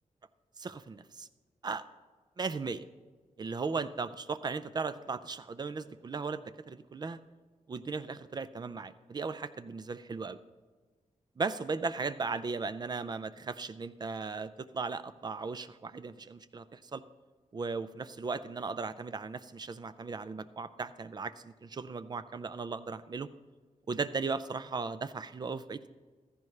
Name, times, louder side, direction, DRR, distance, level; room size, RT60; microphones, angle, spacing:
voice 1, 0.6-1.3 1.6-1.8 2.4-2.8 3.4-7.2 7.7-10.4 11.4-17.0 17.5-23.3 23.9-25.9, right 4 dB, 30° right, 13 dB, 0.4 m, -37 dB
15.5 x 14.0 x 3.3 m, 1.4 s
wide cardioid pair, 175°, 13 cm